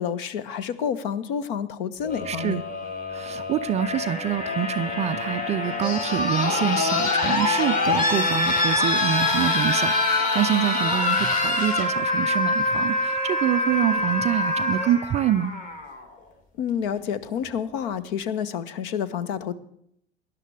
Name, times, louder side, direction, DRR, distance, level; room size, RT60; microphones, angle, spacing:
voice 1, 0.0-2.6 16.6-19.5, left 8 dB, 55° left, 16 dB, 1.0 m, -29 dB
sound 1, 2.0-16.0 17.3-17.4, left 2 dB, 25° left, 2.6 m, -25 dB
voice 2, 2.3-2.6 3.1-15.5, right 11 dB, 20° right, 11 dB, 0.4 m, -26 dB
19.0 x 11.0 x 3.4 m, 0.72 s
figure-of-eight pair, 85°, 32 cm